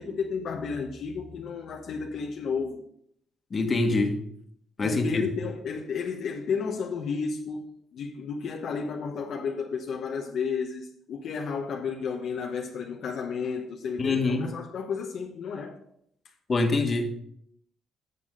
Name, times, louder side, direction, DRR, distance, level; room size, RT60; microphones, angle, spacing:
voice 1, 0.0-2.8 4.8-7.7 7.9-15.8, left 5 dB, 70° left, 1.0 m, -32 dB
voice 2, 3.5-4.2 4.8-5.3 14.0-14.5 16.5-17.1, left 3 dB, 40° left, 1.5 m, -25 dB
11.0 x 7.0 x 3.7 m
cardioid pair, 90°, 0 cm